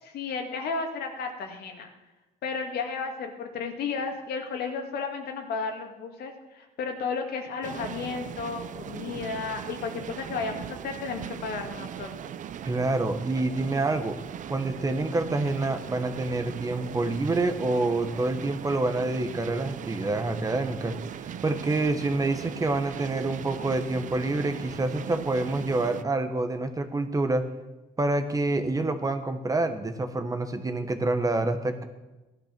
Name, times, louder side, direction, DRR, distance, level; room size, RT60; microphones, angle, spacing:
voice 1, 0.0-1.9 2.4-12.3, left 5 dB, 70° left, 3 dB, 2.4 m, -33 dB
sound 1, 7.6-26.0, right 9 dB, 50° right, 0.7 m, -39 dB
voice 2, 12.6-14.1 14.5-27.5 28.0-31.8, right 2 dB, 20° right, 7 dB, 1.3 m, -27 dB
16.0 x 11.5 x 6.1 m, 1.1 s
cardioid pair, 110°, 17 cm